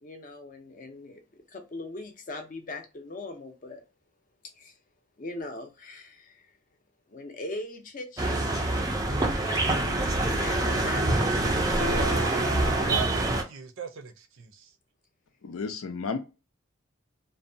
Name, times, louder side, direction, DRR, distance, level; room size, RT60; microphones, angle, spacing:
voice 1, 0.0-3.8 4.5-4.8 5.2-6.6 7.1-8.5 10.2-12.9, left 2 dB, 40° left, 0.5 m, -41 dB
sound 1, 8.2-13.4, right 2 dB, 15° right, 0.3 m, -25 dB
voice 2, 11.7-14.1 14.4-14.5, right 4 dB, 75° right, 0.5 m, -36 dB
voice 3, 15.4-16.2, left 4 dB, 90° left, 0.5 m, -32 dB
2.6 x 2.1 x 2.6 m
head